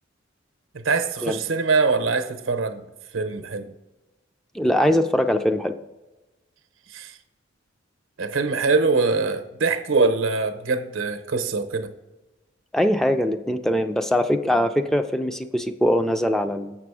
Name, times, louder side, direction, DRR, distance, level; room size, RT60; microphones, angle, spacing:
voice 1, 0.8-2.8 3.1-3.7 6.9-7.2 8.2-11.9, right 4 dB, 90° right, 8 dB, 0.7 m, -23 dB
voice 2, 4.5-5.8 12.7-16.8, equal, ahead, 7 dB, 0.3 m, -22 dB
7.3 x 6.0 x 4.8 m, 1.1 s
head